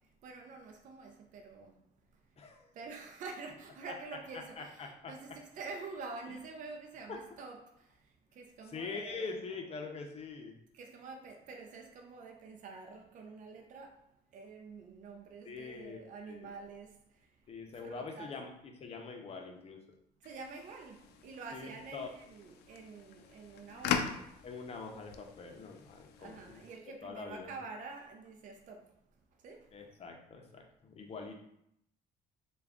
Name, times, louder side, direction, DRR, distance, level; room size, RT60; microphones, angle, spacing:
voice 1, 0.2-1.7 2.7-7.7 8.4-9.2 10.7-14.0 14.3-17.0 17.8-18.3 20.2-24.3 26.2-28.9 29.4-29.7, right 4 dB, 50° right, 0.5 m, -47 dB
voice 2, 2.4-2.7 3.8-3.9 4.6-5.1 6.3-6.4 7.1-7.2 8.7-10.6 15.5-16.5 17.5-19.8 21.5-22.1 24.4-26.6 27.0-27.5 29.7-31.4, left 4 dB, 35° left, 0.6 m, -44 dB
sound 1, 20.2-26.8, left 7 dB, 75° left, 0.4 m, -41 dB
3.6 x 2.3 x 3.5 m
cardioid pair, 110°, 17 cm